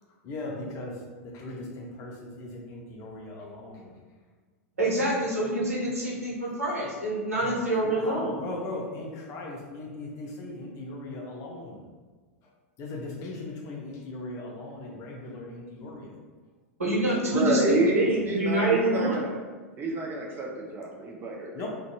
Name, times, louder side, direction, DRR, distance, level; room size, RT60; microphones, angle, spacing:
voice 1, 0.2-4.0 7.4-11.8 12.8-16.2 21.5-21.7, left 2 dB, 40° left, 0 dB, 0.5 m, -39 dB
voice 2, 4.8-8.4 16.8-19.2, right 1 dB, 90° right, -5 dB, 0.9 m, -26 dB
voice 3, 17.3-19.4 19.8-21.7, right 2 dB, 25° right, -1 dB, 0.6 m, -28 dB
2.5 x 2.2 x 2.7 m, 1.4 s
hypercardioid pair, 95°, 8 cm